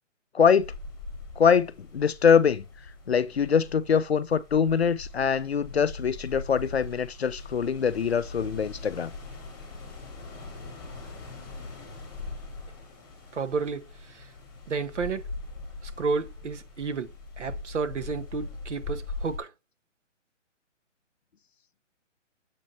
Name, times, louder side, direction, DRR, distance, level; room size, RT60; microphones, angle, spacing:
voice 1, 0.3-0.7 1.4-2.6 3.1-9.1, left 7 dB, 55° left, 0.5 m, -23 dB
sound 1, 0.6-19.4, left 3 dB, 15° left, 2.0 m, -41 dB
voice 2, 13.3-14.3 14.7-15.3 15.8-19.5, right 4 dB, 65° right, 1.4 m, -32 dB
7.4 x 3.9 x 4.3 m
hypercardioid pair, 180°, 38 cm